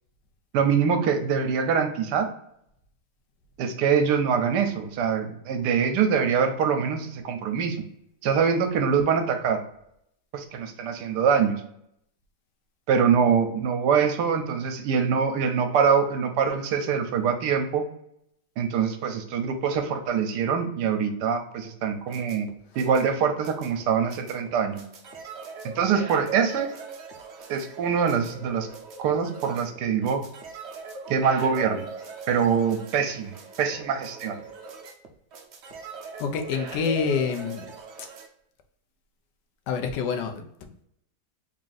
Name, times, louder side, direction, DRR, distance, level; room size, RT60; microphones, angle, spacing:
voice 1, 0.5-2.3 3.6-7.8 8.2-9.6 10.3-11.6 12.9-17.8 18.6-22.5 22.8-24.8 25.8-26.7 27.5-28.7 29.0-30.2 31.1-31.8 32.3-34.4, right 6 dB, 80° right, 6 dB, 1.2 m, -24 dB
sound 1, 21.8-38.3, right 4 dB, 60° right, 0.7 m, -41 dB
voice 2, 36.2-37.7 38.0-38.1 39.7-40.8, left 6 dB, 85° left, 6 dB, 1.3 m, -27 dB
3.6 x 2.5 x 3.8 m, 0.75 s
omnidirectional pair, 1.8 m